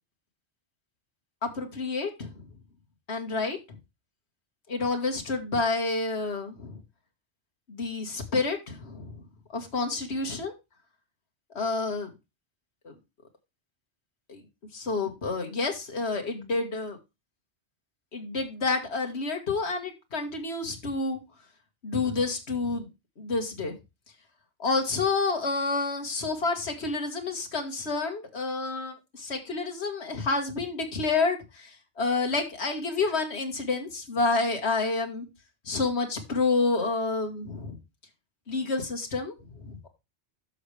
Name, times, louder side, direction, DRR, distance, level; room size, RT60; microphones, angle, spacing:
voice 1, 1.4-2.4 3.1-3.8 4.7-6.8 7.7-9.2 9.5-10.5 11.5-12.1 12.8-12.9 14.3-14.4 14.7-17.0 18.1-21.2 21.8-22.9 23.2-23.7 24.6-35.3 35.7-37.8 38.5-39.9, left 3 dB, 65° left, 4 dB, 2.0 m, -29 dB
11.0 x 6.5 x 3.3 m, 0.24 s
omnidirectional pair, 1.2 m